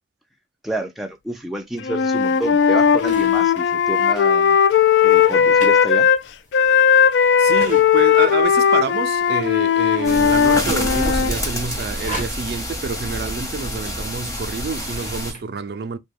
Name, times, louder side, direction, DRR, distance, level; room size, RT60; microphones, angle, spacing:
voice 1, 0.6-4.6 5.0-6.1, right 1 dB, ahead, 0.4 m, -29 dB
Wind instrument woodwind instrument, 1.8-6.2 6.5-11.3, left 7 dB, 85° left, 0.3 m, -17 dB
sound 1, 2.2-15.4, right 1 dB, 40° left, 1.1 m, -41 dB
voice 2, 7.1-16.0, right 5 dB, 65° right, 0.4 m, -28 dB
sound 2, 10.0-15.3, equal, 20° left, 0.9 m, -27 dB
3.2 x 2.2 x 3.4 m
head